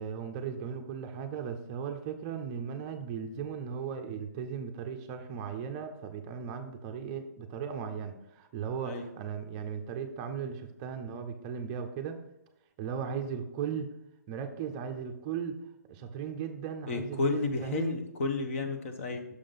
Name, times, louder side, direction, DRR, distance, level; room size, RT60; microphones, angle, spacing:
voice 1, 0.0-12.2 12.8-13.9 14.3-15.6 15.9-18.0, right 7 dB, 20° right, 6 dB, 0.5 m, -37 dB
voice 2, 16.9-19.3, left 3 dB, 45° left, 6 dB, 1.0 m, -31 dB
6.5 x 3.8 x 5.2 m, 0.87 s
hypercardioid pair, 150°, 10 cm